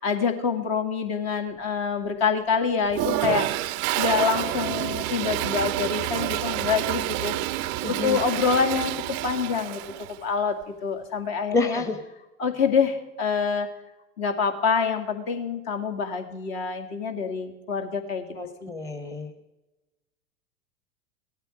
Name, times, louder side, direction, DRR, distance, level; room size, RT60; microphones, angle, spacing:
voice 1, 0.0-3.5 4.0-7.3 7.9-9.8 10.2-11.8 12.4-13.7 14.2-18.3 18.6-18.7, left 5 dB, 50° left, 6 dB, 2.1 m, -26 dB
Toilet flush, 2.9-10.2, right 15 dB, 30° right, 0.5 m, -28 dB
voice 2, 7.8-8.2 11.5-12.0 18.3-19.3, left 3 dB, 10° left, 7 dB, 1.0 m, -28 dB
17.5 x 12.5 x 5.0 m, 1.0 s
figure-of-eight pair, 90°, 41 cm